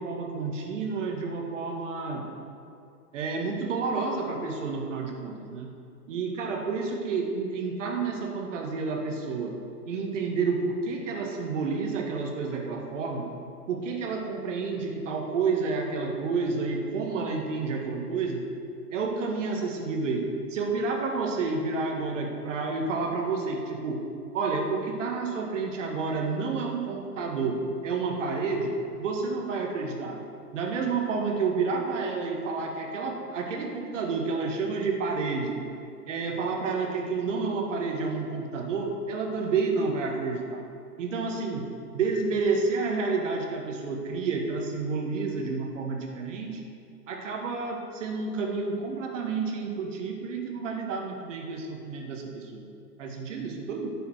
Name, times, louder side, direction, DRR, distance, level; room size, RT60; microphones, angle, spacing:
voice 1, 0.0-2.3 3.1-5.7 6.1-9.6 9.9-13.3 13.7-18.4 18.9-24.0 24.3-30.2 30.5-35.6 36.1-40.6 41.0-41.6 41.9-46.6 47.1-52.7 53.0-53.9, right 4 dB, 50° right, 2 dB, 1.8 m, -30 dB
10.5 x 5.6 x 7.9 m, 2.5 s
figure-of-eight pair, 115°, 48 cm